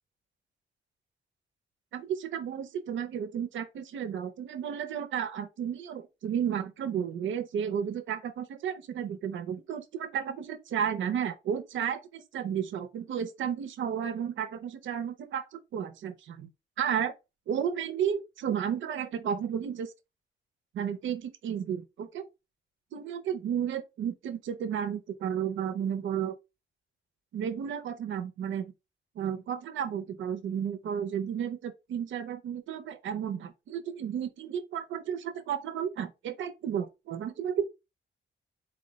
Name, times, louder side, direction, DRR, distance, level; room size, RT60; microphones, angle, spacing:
voice 1, 1.9-16.5 16.8-17.1 17.5-19.9 20.7-22.3 22.9-26.4 27.3-28.7 29.2-37.7, right 8 dB, 75° right, 0.5 m, -33 dB
4.1 x 2.1 x 3.9 m
wide cardioid pair, 175°, 20 cm